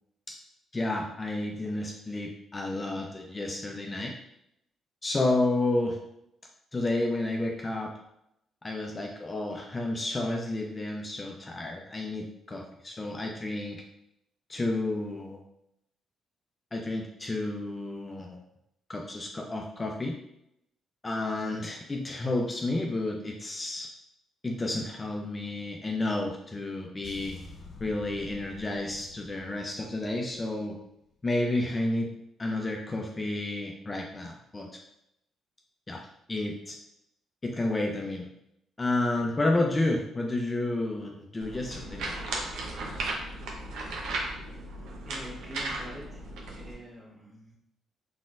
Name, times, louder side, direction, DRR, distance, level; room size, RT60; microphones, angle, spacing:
voice 1, 0.7-4.1 5.0-6.0 6.7-7.9 8.6-13.8 14.5-15.4 16.7-18.4 18.9-20.2 21.0-23.9 24.4-27.4 27.8-30.8 31.2-32.1 32.4-34.8 35.9-36.0 36.3-36.8 37.4-38.3 38.8-42.2, left 2 dB, 25° left, 0 dB, 0.6 m, -31 dB
sound 1, 27.0-31.1, left 3 dB, 55° left, 1.0 m, -49 dB
sound 2, 41.4-46.7, right 2 dB, 85° right, 0.9 m, -36 dB
voice 2, 45.1-47.6, equal, 30° right, -4 dB, 1.6 m, -46 dB
4.4 x 4.2 x 2.5 m, 0.79 s
cardioid pair, 90°, 0 cm